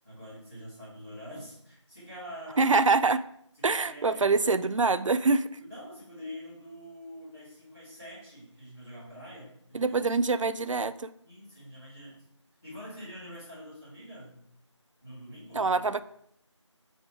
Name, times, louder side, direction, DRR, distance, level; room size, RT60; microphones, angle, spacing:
voice 1, 0.0-2.7 3.6-4.2 5.6-9.9 11.2-12.2 12.6-14.3 15.0-15.7, equal, 5° left, -19 dB, 1.4 m, -45 dB
voice 2, 2.6-3.2 3.6-5.6 9.7-11.1 15.5-16.0, right 4 dB, 85° right, 14 dB, 0.4 m, -25 dB
7.1 x 3.9 x 4.5 m, 0.69 s
figure-of-eight pair, 180°, 16 cm